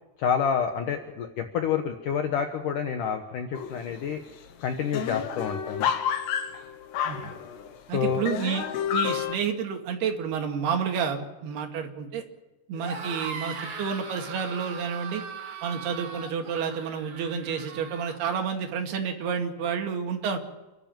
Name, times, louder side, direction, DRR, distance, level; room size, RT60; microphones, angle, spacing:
voice 1, 0.2-4.2 4.6-5.9 7.9-8.3, left 7 dB, 65° left, 6 dB, 2.4 m, -28 dB
sound 1, 3.5-4.0 4.3-4.4 4.6-7.8 8.3-9.3, left 8 dB, 85° left, 3.6 m, -30 dB
voice 2, 7.9-8.6 8.9-12.2 12.7-15.2 15.6-20.4, right 7 dB, 75° right, 3 dB, 4.2 m, -30 dB
sound 2, 12.7-18.2, right 5 dB, 50° right, 3.5 m, -39 dB
29.5 x 12.5 x 7.7 m, 1.1 s
omnidirectional pair, 4.7 m